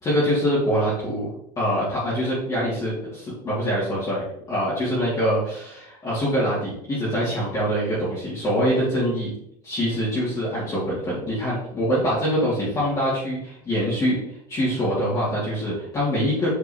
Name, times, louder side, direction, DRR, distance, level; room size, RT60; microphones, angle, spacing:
voice 1, 0.0-1.3 1.6-9.3 9.6-14.2 14.5-16.5, equal, 20° left, -9 dB, 2.0 m, -24 dB
8.2 x 4.5 x 2.8 m, 0.76 s
supercardioid pair, 150°, 19 cm